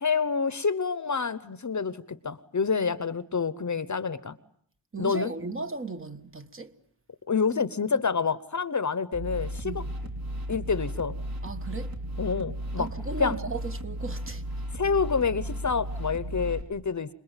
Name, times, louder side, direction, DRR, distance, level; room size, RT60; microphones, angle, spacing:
voice 1, 0.0-4.4 5.0-5.3 7.3-9.8 10.5-11.1 12.2-12.9 13.2-13.4 14.7-17.1, left 5 dB, 40° left, 1.0 m, -28 dB
voice 2, 4.9-6.7 9.6-9.9 11.4-11.9 12.8-14.4, right 3 dB, 30° right, 1.5 m, -36 dB
sound 1, 9.1-16.6, right 1 dB, 50° right, 4.2 m, -35 dB
27.0 x 21.5 x 9.1 m
wide cardioid pair, 160°, 43 cm